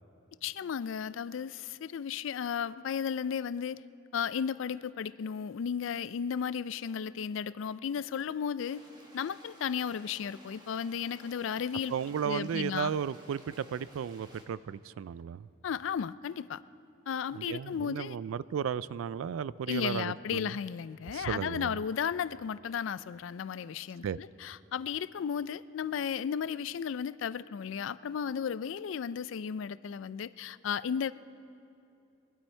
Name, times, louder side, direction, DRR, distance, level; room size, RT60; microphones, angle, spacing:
voice 1, 0.4-3.8 4.1-8.8 9.1-12.0 12.2-12.9 15.6-16.6 17.1-18.2 19.7-31.1, left 7 dB, 70° left, 17 dB, 0.3 m, -34 dB
sound 1, 8.6-14.4, right 1 dB, 20° right, 1.6 m, -56 dB
voice 2, 11.9-15.5 17.3-20.5 21.1-21.8 24.0-24.2, right 7 dB, 85° right, 19 dB, 0.3 m, -34 dB
23.0 x 12.5 x 4.4 m, 2.7 s
head